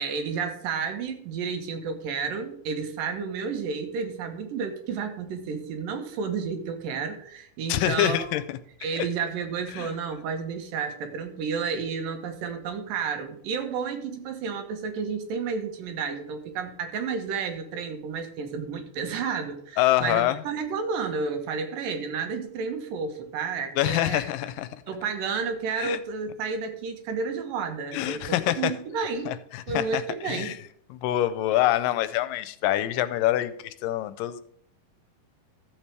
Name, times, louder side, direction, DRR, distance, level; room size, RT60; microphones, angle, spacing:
voice 1, 0.0-8.4 8.8-24.3 24.9-29.3 29.7-30.5, right 5 dB, 80° right, 5 dB, 2.9 m, -31 dB
voice 2, 7.7-8.4 9.0-9.1 9.7-9.9 19.8-20.4 23.8-24.7 25.8-26.0 27.9-28.7 29.3-30.6 30.9-34.4, left 14 dB, 85° left, 13 dB, 2.2 m, -25 dB
13.5 x 7.4 x 3.4 m, 0.65 s
omnidirectional pair, 4.0 m